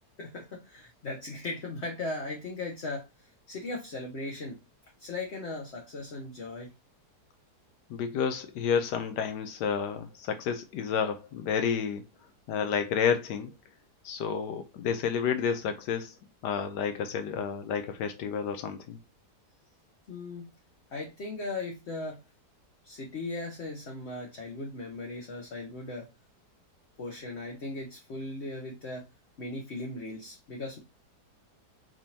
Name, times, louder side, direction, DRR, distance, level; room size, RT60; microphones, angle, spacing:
voice 1, 0.2-4.6 5.0-6.7 20.1-20.5 20.9-22.2 22.8-26.1 27.0-29.1 29.4-30.8, left 2 dB, 50° left, 1.0 m, -38 dB
voice 2, 7.9-12.0 12.5-13.5 14.0-16.1 16.4-19.0, left 7 dB, 90° left, 1.2 m, -30 dB
5.1 x 3.5 x 2.8 m
omnidirectional pair, 1.8 m